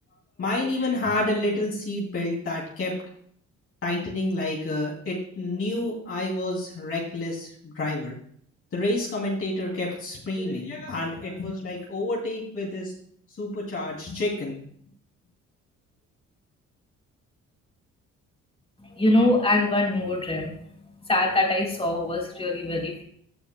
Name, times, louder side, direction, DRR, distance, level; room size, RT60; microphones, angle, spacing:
voice 1, 0.4-2.9 3.8-8.2 8.7-12.9 13.4-14.6, left 2 dB, 45° left, -3 dB, 2.8 m, -29 dB
voice 2, 18.9-20.5 21.0-23.0, left 1 dB, 20° left, -1 dB, 3.4 m, -23 dB
15.5 x 7.0 x 2.2 m, 0.62 s
cardioid pair, 90°, 30 cm